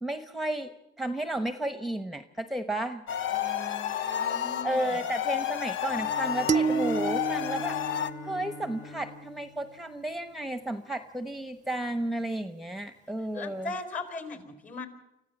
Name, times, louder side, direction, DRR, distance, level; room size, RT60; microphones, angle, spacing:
voice 1, 0.0-3.0 4.6-7.8 8.2-13.7, right 1 dB, ahead, 9 dB, 1.0 m, -33 dB
sound 1, 3.1-8.1, left 10 dB, 75° left, 0.9 m, -31 dB
voice 2, 3.3-5.0 13.3-14.9, left 3 dB, 40° left, 8 dB, 4.4 m, -39 dB
Bowed string instrument, 5.9-10.7, left 4 dB, 60° left, 3.5 m, -46 dB
sound 2, 6.5-8.9, right 6 dB, 35° right, 0.6 m, -30 dB
25.0 x 14.5 x 7.2 m, 0.91 s
cardioid pair, 90°, 20 cm